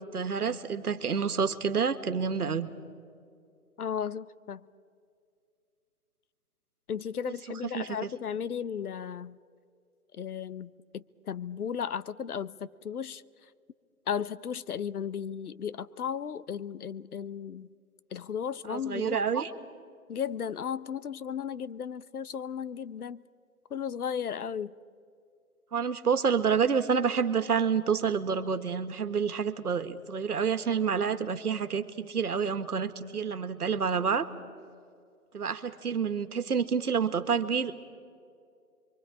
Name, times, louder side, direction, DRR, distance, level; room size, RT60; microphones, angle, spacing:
voice 1, 0.1-2.7 7.7-8.1 18.7-19.5 25.7-34.3 35.3-37.7, right 6 dB, 90° right, 10 dB, 1.7 m, -28 dB
voice 2, 3.8-4.6 6.9-9.4 10.1-13.2 14.1-17.7 18.1-19.2 20.1-23.2 23.7-24.7, left 8 dB, 80° left, 18 dB, 0.9 m, -35 dB
29.5 x 24.0 x 4.9 m, 2.3 s
hypercardioid pair, 160°, 44 cm